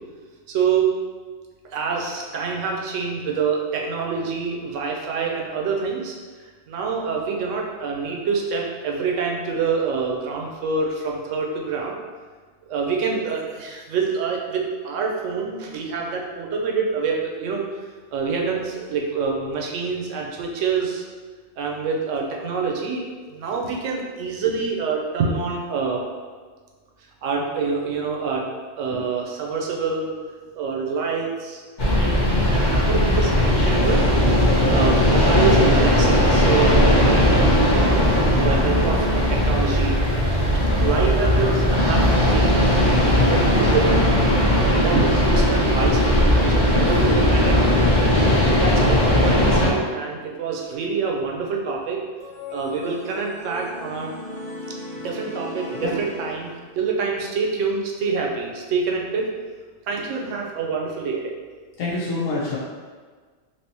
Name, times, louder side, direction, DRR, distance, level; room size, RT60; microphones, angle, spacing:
voice 1, 0.5-1.0 1.7-6.1 6.7-12.0 12.7-17.8 18.1-21.0 21.6-23.0 23.3-26.1 27.2-28.5 28.8-30.2 30.5-31.6 32.0-38.1 38.3-40.0 40.8-42.8 43.3-44.0 44.8-47.9 48.5-52.0 52.5-54.1 55.0-59.3 59.9-61.3, right 5 dB, 70° right, 0 dB, 0.9 m, -26 dB
sound 1, 31.8-49.7, left 1 dB, 45° left, 0.7 m, -18 dB
sound 2, 52.2-56.9, left 2 dB, 5° left, 0.7 m, -36 dB
voice 2, 61.8-62.6, left 3 dB, 80° left, -7 dB, 1.1 m, -26 dB
3.3 x 2.8 x 2.9 m, 1.5 s
omnidirectional pair, 1.4 m